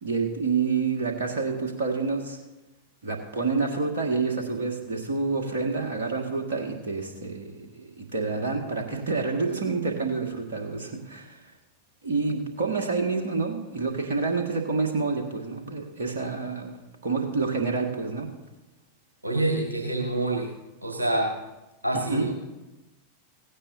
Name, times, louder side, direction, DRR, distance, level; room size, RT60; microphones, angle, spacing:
voice 1, 0.0-2.4 3.0-11.4 12.0-16.7 17.0-18.3 22.1-22.3, right 4 dB, 60° right, 2 dB, 2.0 m, -28 dB
voice 2, 19.2-20.5 20.8-21.3 21.8-22.4, right 2 dB, 80° right, 1 dB, 1.8 m, -26 dB
16.5 x 16.5 x 2.8 m, 1.1 s
figure-of-eight pair, 90°, 0 cm